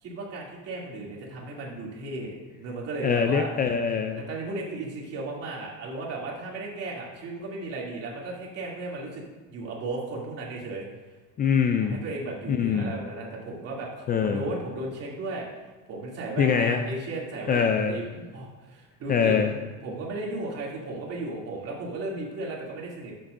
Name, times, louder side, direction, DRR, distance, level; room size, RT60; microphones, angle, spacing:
voice 1, 0.0-3.5 4.3-10.9 11.8-15.5 15.9-23.1, right 2 dB, 45° right, -3 dB, 2.8 m, -35 dB
voice 2, 3.0-4.2 11.4-12.0 12.5-12.9 14.1-14.5 16.4-16.8 17.5-18.0 19.1-19.5, left 6 dB, 25° left, 6 dB, 0.4 m, -23 dB
13.5 x 7.7 x 2.6 m, 1.3 s
cardioid pair, 150°, 34 cm